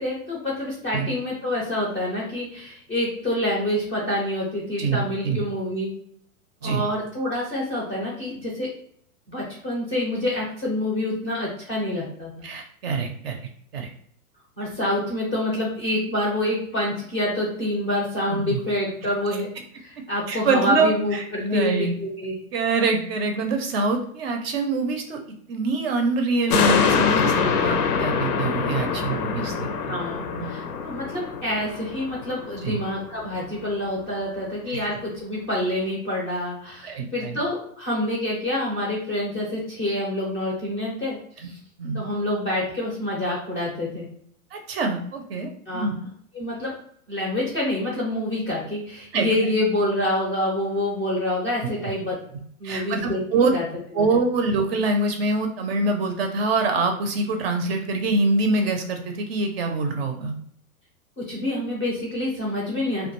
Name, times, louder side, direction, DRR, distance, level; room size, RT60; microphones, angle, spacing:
voice 1, 0.0-5.9 6.6-8.7 9.3-12.5 14.6-19.5 19.8-22.4 29.9-41.6 41.9-44.1 45.7-45.9 46.3-46.7 47.1-52.2 52.6-53.6 54.0-54.2 61.3-63.1, left 1 dB, 15° left, -4 dB, 0.4 m, -27 dB
voice 2, 4.8-5.4 6.6-6.8 12.4-13.4 13.7-13.9 18.3-18.6 20.0-22.0 22.5-29.9 30.4-30.5 32.6-32.8 34.7-34.9 36.8-37.4 41.4-41.5 41.8-42.0 44.5-45.9 49.1-49.3 52.6-53.5 53.9-60.3, right 3 dB, 45° right, 4 dB, 0.4 m, -25 dB
sound 1, 26.5-33.2 33.6-33.7, left 5 dB, 85° left, 0.6 m, -24 dB
2.2 x 2.2 x 2.9 m, 0.65 s
hypercardioid pair, 140°, 44 cm